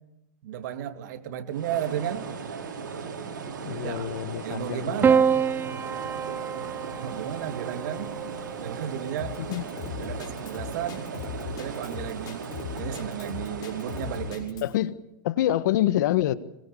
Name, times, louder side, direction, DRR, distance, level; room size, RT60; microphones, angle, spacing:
voice 1, 0.4-2.3 3.6-4.1 4.4-5.4 7.0-8.1 8.6-9.4 9.8-12.4 12.8-14.6, right 10 dB, 65° right, 3.0 m, -34 dB
sound 1, 1.5-14.4, right 5 dB, 80° right, 6.6 m, -37 dB
voice 2, 3.6-5.2 9.5-9.6 14.6-15.0 15.2-16.3, left 13 dB, 65° left, 1.5 m, -26 dB
Piano, 5.0-9.5 10.7-11.4, right 7 dB, 20° right, 0.8 m, -27 dB
Drum kit, 9.2-14.7, left 8 dB, 40° left, 6.7 m, -38 dB
26.5 x 22.0 x 7.1 m
hypercardioid pair, 115°, 10 cm